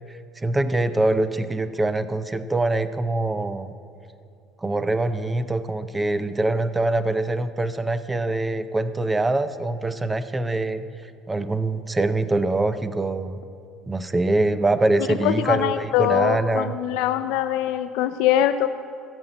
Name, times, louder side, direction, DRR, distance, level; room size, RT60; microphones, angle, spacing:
voice 1, 0.1-3.7 4.6-10.8 11.3-13.4 13.9-16.7, right 2 dB, 10° right, 12 dB, 0.4 m, -24 dB
voice 2, 15.2-18.7, left 12 dB, 80° left, 9 dB, 0.4 m, -22 dB
15.0 x 6.0 x 8.8 m, 2.6 s
cardioid pair, 170°, 0 cm